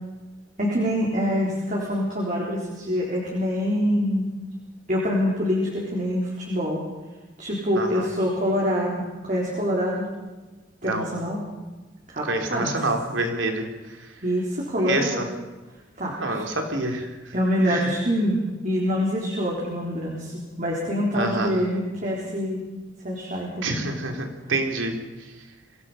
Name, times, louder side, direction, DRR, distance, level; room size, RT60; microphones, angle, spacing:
voice 1, 0.6-4.3 4.9-6.8 7.4-10.1 10.8-11.4 12.1-12.7 14.2-15.2 16.0-16.4 17.3-18.4 18.6-22.6 23.0-23.8, equal, 40° right, -3 dB, 4.0 m, -25 dB
voice 2, 7.7-8.1 10.8-11.1 12.2-13.7 14.8-15.3 16.2-17.3 17.6-17.9 21.1-21.6 23.6-25.0, right 2 dB, 85° right, 3 dB, 3.4 m, -27 dB
25.5 x 18.0 x 5.7 m, 1.2 s
head